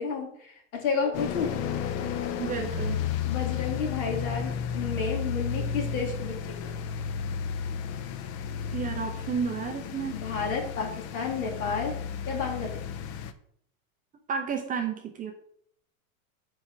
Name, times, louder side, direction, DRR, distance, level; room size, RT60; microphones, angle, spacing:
voice 1, 0.0-1.5 3.3-6.7 10.1-11.9 12.3-12.8, left 5 dB, 70° left, 1 dB, 2.4 m, -31 dB
sound 1, 1.1-13.3, left 7 dB, 40° left, 0.5 m, -33 dB
voice 2, 2.4-3.0 8.7-10.2 14.3-15.3, right 6 dB, 20° right, 4 dB, 0.4 m, -31 dB
4.5 x 4.3 x 5.9 m, 0.68 s
supercardioid pair, 125°, 43 cm